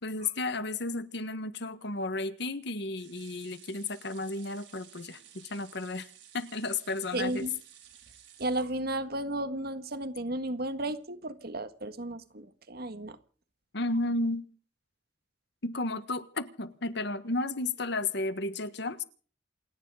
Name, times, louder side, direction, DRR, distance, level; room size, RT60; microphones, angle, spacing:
voice 1, 0.0-6.1 6.3-7.4 13.7-14.5 15.6-19.0, left 2 dB, 65° left, 1.6 m, -33 dB
sound 1, 2.9-9.3 9.7-9.8 10.1-10.2, right 10 dB, 75° right, 5.2 m, -55 dB
voice 2, 7.1-7.5 8.4-13.2, right 1 dB, 60° right, 1.7 m, -34 dB
28.5 x 10.0 x 4.9 m
head